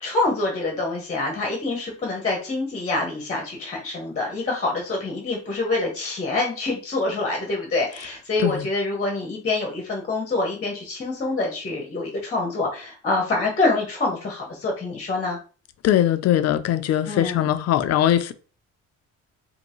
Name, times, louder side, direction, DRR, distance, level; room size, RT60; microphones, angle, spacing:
voice 1, 0.0-15.4 17.1-17.5, left 2 dB, 25° left, 0.9 m, -26 dB
voice 2, 15.8-18.3, left 11 dB, 55° left, 0.5 m, -21 dB
5.3 x 2.6 x 3.0 m
cardioid pair, 180°, 30 cm